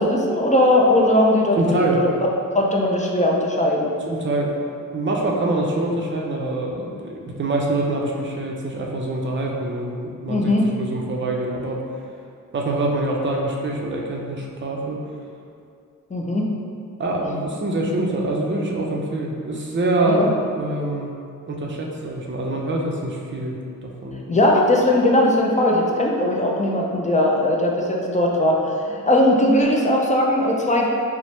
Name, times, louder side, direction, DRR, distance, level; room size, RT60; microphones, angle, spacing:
voice 1, 0.0-2.1 2.5-3.9 10.3-10.7 16.1-16.5 20.0-20.3 24.3-30.9, left 1 dB, 20° left, -1 dB, 0.4 m, -19 dB
voice 2, 1.6-2.0 4.1-4.5 4.9-11.8 12.5-15.1 17.0-20.3 20.5-21.1 21.5-24.2, right 2 dB, 35° right, -1 dB, 0.5 m, -25 dB
4.4 x 2.0 x 3.1 m, 2.4 s
wide cardioid pair, 110°, 34 cm